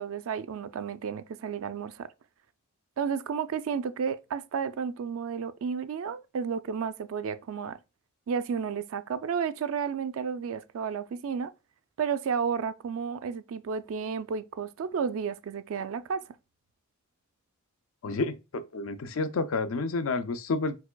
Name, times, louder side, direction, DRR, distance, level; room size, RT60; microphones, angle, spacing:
voice 1, 0.0-2.1 3.0-7.8 8.3-11.5 12.0-16.2, right 6 dB, 65° right, 0.3 m, -32 dB
voice 2, 18.0-20.8, left 3 dB, 65° left, 0.4 m, -30 dB
4.7 x 4.4 x 2.2 m
head